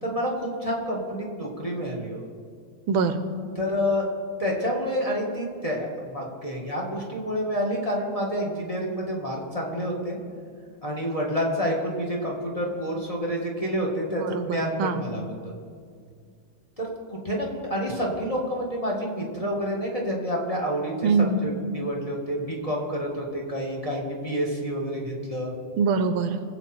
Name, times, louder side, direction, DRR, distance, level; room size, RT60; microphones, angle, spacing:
voice 1, 0.0-2.2 3.6-4.1 4.4-10.2 10.8-15.5 16.8-25.5, equal, 15° left, -2 dB, 1.8 m, -28 dB
voice 2, 2.9-3.2 14.1-15.0 21.0-21.4 25.8-26.4, right 4 dB, 80° right, 10 dB, 1.6 m, -24 dB
23.0 x 7.9 x 4.4 m, 2.2 s
omnidirectional pair, 2.3 m